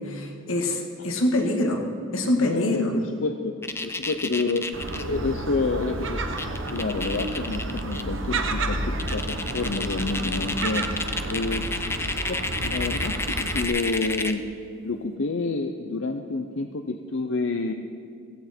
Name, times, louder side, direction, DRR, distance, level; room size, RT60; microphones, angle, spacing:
voice 1, 0.0-1.8 2.1-2.9, left 1 dB, 85° left, 2 dB, 2.0 m, -25 dB
voice 2, 2.4-4.7 5.0-6.2 6.7-10.9 11.3-14.5 14.8-17.7, left 3 dB, 65° left, 6 dB, 0.7 m, -29 dB
sound 1, 3.6-5.0 6.1-6.2 6.4-8.0 8.5-8.6 9.0-14.4, left 3 dB, 10° left, 0.6 m, -31 dB
Gull seagull, 4.7-13.6, right 2 dB, 65° right, 1.1 m, -31 dB
16.5 x 15.5 x 4.4 m, 2.4 s
head